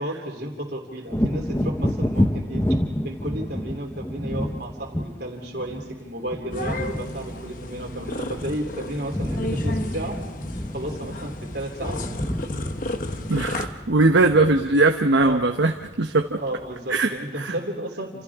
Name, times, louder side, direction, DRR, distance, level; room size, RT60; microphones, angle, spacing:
voice 1, 0.0-2.6 3.0-10.2 10.7-12.0 15.1-15.5 16.4-18.2, right 1 dB, 60° right, 1 dB, 3.5 m, -33 dB
Wind / Thunder, 1.1-8.7 8.9-16.2 16.6-16.7, left 1 dB, 15° left, 0.7 m, -29 dB
sound 1, 6.5-13.7, left 1 dB, 45° left, 1.1 m, -33 dB
voice 2, 13.3-16.4 16.9-17.5, right 2 dB, 80° right, 4 dB, 1.0 m, -20 dB
29.5 x 28.0 x 3.7 m, 1.2 s
head